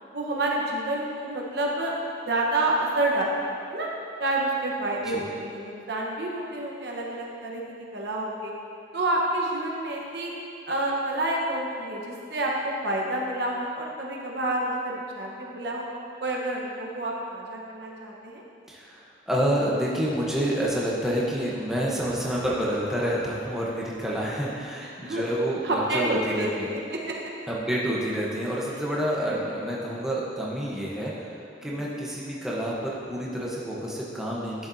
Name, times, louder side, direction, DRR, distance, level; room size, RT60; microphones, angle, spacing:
voice 1, 0.1-1.9 2.3-3.4 3.7-3.9 4.2-7.6 7.9-8.5 8.9-10.3 10.7-15.9 16.2-18.4 24.8-25.3 25.6-27.1 29.3-29.6 31.6-31.9, right 1 dB, 65° right, -2 dB, 1.1 m, -29 dB
voice 2, 18.7-26.7 27.5-34.7, equal, 5° right, -6 dB, 0.9 m, -28 dB
11.5 x 6.8 x 2.7 m, 2.5 s
head